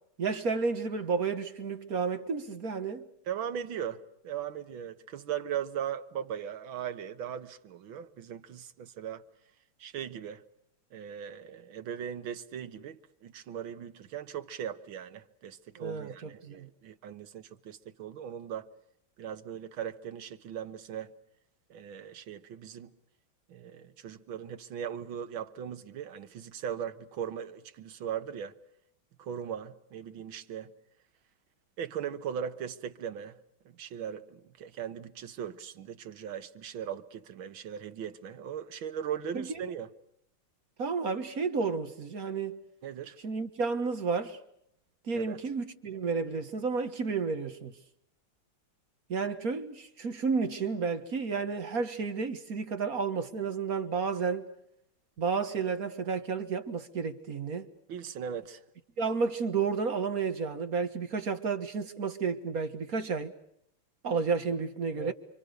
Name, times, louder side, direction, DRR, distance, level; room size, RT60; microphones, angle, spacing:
voice 1, 0.2-3.0 15.8-16.7 39.3-39.5 40.8-42.6 43.2-44.4 45.1-47.7 49.1-54.5 55.2-57.7 59.0-63.3 64.0-65.1, right 5 dB, 50° right, 1.8 m, -31 dB
voice 2, 3.3-9.2 9.8-10.4 10.9-18.7 19.2-21.1 21.7-22.9 23.5-28.5 29.2-30.7 31.8-33.4 33.7-39.9 42.8-43.2 45.1-45.4 57.9-58.6 65.0-65.1, right 9 dB, 80° right, 2.0 m, -39 dB
29.5 x 25.0 x 6.6 m
omnidirectional pair, 2.1 m